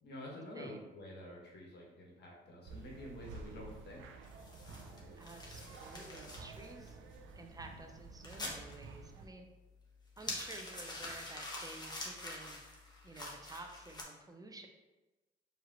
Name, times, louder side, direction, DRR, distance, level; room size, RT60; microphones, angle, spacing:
voice 1, 0.0-4.0 4.6-5.1, left 1 dB, 60° left, -3 dB, 1.4 m, -49 dB
voice 2, 0.5-0.9 5.2-7.0 7.3-9.5 10.2-12.6 13.0-14.7, right 2 dB, 20° right, 4 dB, 0.6 m, -51 dB
sound 1, 2.6-9.3, right 4 dB, 85° right, 0.5 m, -52 dB
sound 2, 4.2-14.0, left 2 dB, 20° left, 1.1 m, -47 dB
4.6 x 3.1 x 3.0 m, 1.1 s
cardioid pair, 90°, 20 cm